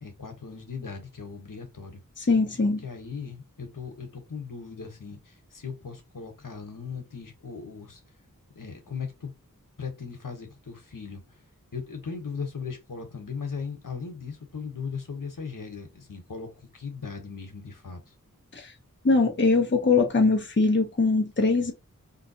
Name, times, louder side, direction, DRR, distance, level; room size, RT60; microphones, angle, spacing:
voice 1, 0.0-2.0 2.8-8.0 8.5-9.3 9.8-11.2 11.7-18.0, left 5 dB, 70° left, 1.1 m, -38 dB
voice 2, 2.2-2.8 18.5-18.7 19.0-21.7, left 3 dB, 35° left, 0.8 m, -22 dB
3.8 x 2.7 x 2.8 m
wide cardioid pair, 50°, 34 cm